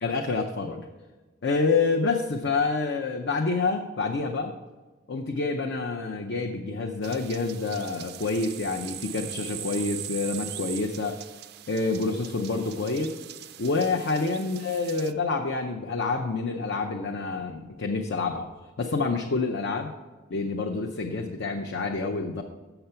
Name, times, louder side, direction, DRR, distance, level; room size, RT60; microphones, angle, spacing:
voice 1, 0.0-0.9 1.4-4.5 5.1-11.2 11.7-13.1 13.6-18.5 18.8-19.9 20.3-22.4, left 3 dB, 60° left, 1 dB, 0.6 m, -27 dB
sound 1, 7.0-15.1, right 12 dB, 50° right, 0.4 m, -41 dB
6.8 x 6.7 x 5.6 m, 1.2 s
head